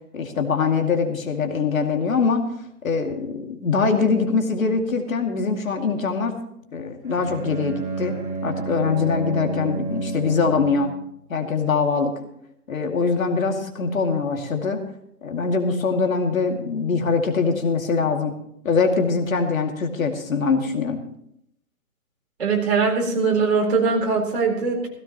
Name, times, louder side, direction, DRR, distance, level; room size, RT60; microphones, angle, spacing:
voice 1, 0.1-2.4 2.8-6.4 6.7-10.9 11.3-12.1 12.7-14.8 15.2-18.3 18.6-21.0, left 4 dB, 60° left, 4 dB, 2.5 m, -23 dB
Bowed string instrument, 7.0-11.1, right 3 dB, 65° right, 7.1 m, -30 dB
voice 2, 22.4-24.9, right 4 dB, 45° right, -1 dB, 4.2 m, -21 dB
17.5 x 16.5 x 3.0 m, 0.72 s
hypercardioid pair, 175°, 46 cm